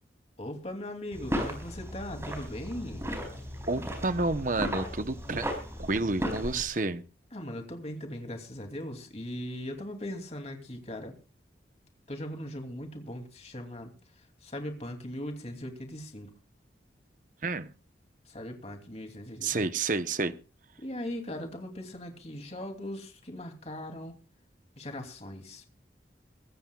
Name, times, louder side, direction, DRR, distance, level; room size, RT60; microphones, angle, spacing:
voice 1, 0.4-3.1 7.3-11.1 12.1-13.9 14.4-16.3 18.3-19.6 20.8-24.2 24.8-25.6, left 1 dB, 35° left, 4 dB, 2.8 m, -39 dB
sound 1, 1.1-6.6, equal, 15° right, 4.7 m, -35 dB
voice 2, 3.7-5.5 5.8-7.0 17.4-17.7 19.4-20.3, right 3 dB, 45° right, 12 dB, 0.9 m, -30 dB
23.5 x 15.0 x 2.4 m, 0.33 s
head